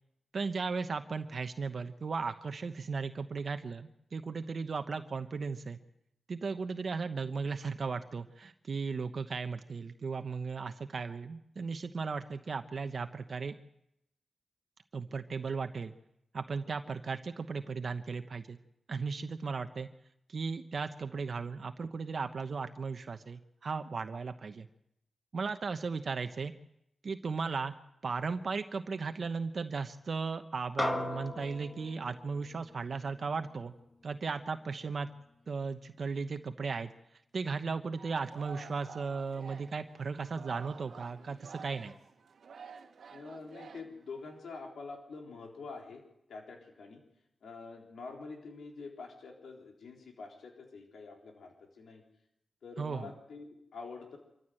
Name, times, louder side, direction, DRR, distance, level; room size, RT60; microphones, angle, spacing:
voice 1, 0.3-5.8 6.3-13.5 14.9-15.9 16.3-18.6 18.9-19.9 20.3-24.7 25.3-26.5 27.0-27.7 28.0-33.7 34.0-35.1 35.5-36.9 37.3-41.9 52.8-53.1, right 4 dB, 55° right, 7 dB, 1.0 m, -36 dB
sound 1, 30.8-35.4, left 2 dB, 20° left, 1.7 m, -40 dB
Singing, 38.0-44.4, right 6 dB, 75° right, 1.5 m, -50 dB
voice 2, 43.1-46.0 46.3-47.0 47.4-52.0 52.6-54.2, left 4 dB, 85° left, 1 dB, 3.8 m, -46 dB
25.5 x 14.5 x 7.7 m, 0.82 s
wide cardioid pair, 95°, 0 cm